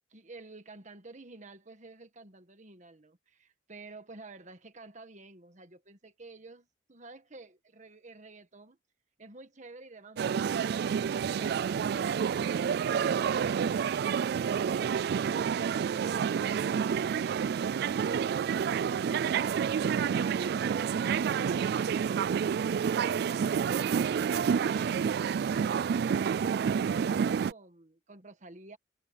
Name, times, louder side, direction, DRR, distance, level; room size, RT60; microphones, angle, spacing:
voice 1, 0.1-8.8 9.2-12.2 23.3-24.0 24.5-28.8, right 3 dB, 40° right, 1.6 m, -50 dB
sound 1, 10.2-27.5, right 7 dB, 60° right, 0.3 m, -29 dB
head